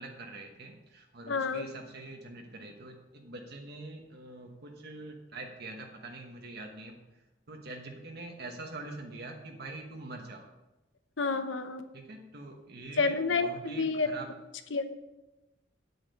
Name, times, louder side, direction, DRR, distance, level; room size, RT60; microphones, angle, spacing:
voice 1, 0.0-7.0 7.5-10.5 11.9-14.3, right 2 dB, 60° right, 2 dB, 1.2 m, -44 dB
voice 2, 1.3-1.7 11.2-11.9 13.0-14.1 14.7-14.8, left 4 dB, 85° left, 9 dB, 0.9 m, -29 dB
8.8 x 8.0 x 5.3 m, 1.0 s
head